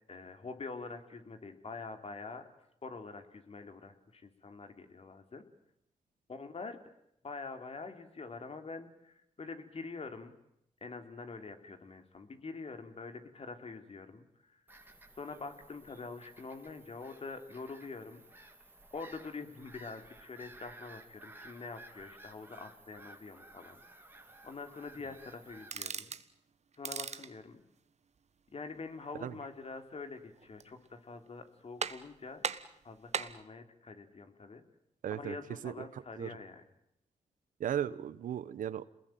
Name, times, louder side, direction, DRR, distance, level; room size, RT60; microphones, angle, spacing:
voice 1, 0.1-2.5 2.8-5.4 6.3-6.8 7.2-10.3 10.8-14.6 15.2-18.5 18.9-24.0 24.4-26.2 26.8-27.6 28.5-32.4 32.8-34.6 35.1-36.6, left 4 dB, 50° left, 8 dB, 3.5 m, -45 dB
Bird vocalization bird call bird song / Gull seagull, 14.7-25.8, right 2 dB, 15° right, 3.1 m, -55 dB
sound 1, 25.6-26.3 26.7-27.3 30.3-30.9 31.3-31.4 31.8-32.2 32.4-33.4, right 6 dB, 60° right, 1.4 m, -38 dB
voice 2, 35.0-35.3 35.6-35.7 36.2-36.3 37.6-38.9, right 10 dB, 85° right, 16 dB, 1.1 m, -35 dB
27.5 x 21.0 x 9.2 m, 0.77 s
cardioid pair, 65°, 13 cm